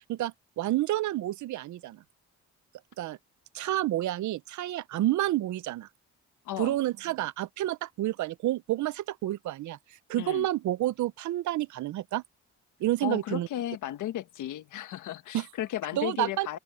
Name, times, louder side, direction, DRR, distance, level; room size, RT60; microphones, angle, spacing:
voice 1, 0.1-2.0 3.0-3.2 3.5-5.9 6.6-9.8 10.1-12.2 12.8-13.5 15.3-15.5 15.9-16.6, right 15 dB, 75° right, 0.7 m, -29 dB
voice 2, 6.4-6.8 10.1-10.5 13.0-16.6, left 13 dB, 80° left, 1.7 m, -34 dB
open air
cardioid pair, 90°, 30 cm